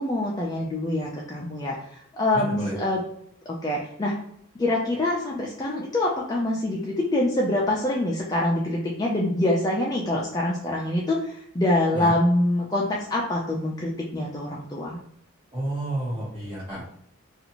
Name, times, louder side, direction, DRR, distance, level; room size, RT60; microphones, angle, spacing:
voice 1, 0.0-3.0 3.5-4.2 4.6-15.0, left 1 dB, 15° left, -3 dB, 0.3 m, -25 dB
voice 2, 2.3-2.7 11.9-12.1 15.5-16.8, right 1 dB, 25° right, -6 dB, 1.4 m, -30 dB
2.6 x 2.4 x 2.8 m, 0.70 s
head